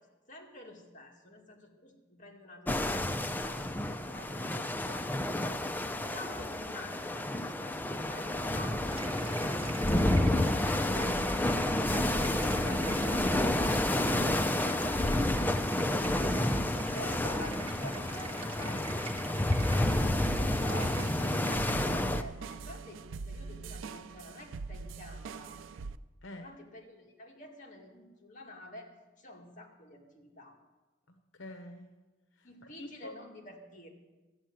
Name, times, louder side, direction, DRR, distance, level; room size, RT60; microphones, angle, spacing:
voice 1, 0.3-10.0 10.9-11.7 12.0-15.3 16.9-25.6 26.4-30.6 32.4-33.9, left 1 dB, 45° left, 0 dB, 2.2 m, -48 dB
sound 1, 2.7-22.2, left 1 dB, 10° left, 0.5 m, -30 dB
sound 2, 8.9-21.9, right 4 dB, 30° right, 1.1 m, -46 dB
voice 2, 10.3-11.2 16.1-16.4 26.2-26.5 31.1-31.9 32.4-33.2, left 1 dB, 75° left, 6 dB, 0.9 m, -46 dB
sound 3, 20.2-26.0, right 4 dB, 85° right, 0.4 m, -42 dB
13.0 x 7.4 x 8.9 m, 1.2 s
head